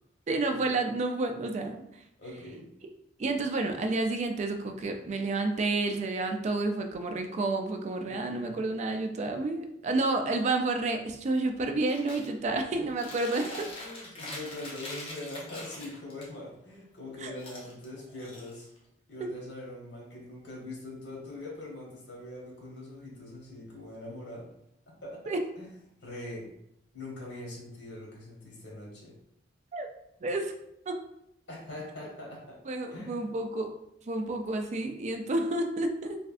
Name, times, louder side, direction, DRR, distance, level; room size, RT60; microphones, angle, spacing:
voice 1, 0.3-1.8 3.2-13.4 17.2-17.3 19.2-19.3 25.3-25.4 29.7-29.9 30.2-30.5 30.9-31.0 32.7-33.7 34.1-36.2, right 2 dB, 40° right, 5 dB, 0.3 m, -30 dB
voice 2, 2.2-2.7 8.1-8.6 13.3-18.7 19.1-24.5 24.9-26.5 26.9-29.2 31.5-32.6 32.9-33.2, left 1 dB, 80° left, -2 dB, 1.0 m, -43 dB
Chewing mastication, 11.9-12.3 12.7-16.3 17.3-18.9, left 1 dB, 30° left, 0.8 m, -43 dB
3.2 x 2.6 x 2.4 m, 0.79 s
head